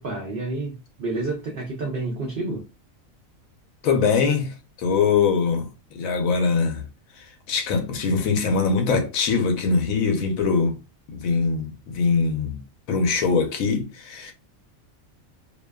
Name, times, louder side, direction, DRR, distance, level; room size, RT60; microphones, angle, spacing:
voice 1, 0.0-2.7, right 2 dB, 60° right, 0.6 m, -29 dB
voice 2, 3.8-6.8 7.2-10.8 11.1-12.6 12.9-14.3, left 5 dB, 75° left, 1.0 m, -22 dB
2.6 x 2.2 x 2.2 m
omnidirectional pair, 1.4 m